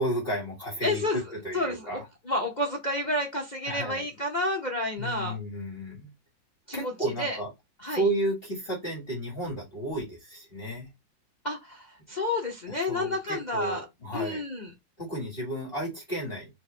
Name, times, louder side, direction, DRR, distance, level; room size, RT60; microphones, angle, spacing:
voice 1, 0.0-2.1 3.7-4.0 5.0-6.1 6.7-7.5 7.9-10.9 12.7-14.4 15.0-16.5, right 1 dB, 30° left, 2.1 m, -32 dB
voice 2, 0.8-1.2 1.5-2.0 2.3-5.4 6.7-6.9 7.2-7.4 7.8-8.0 11.4-13.8 14.1-14.7, left 1 dB, 50° left, 0.5 m, -30 dB
4.5 x 3.0 x 3.3 m
omnidirectional pair, 2.1 m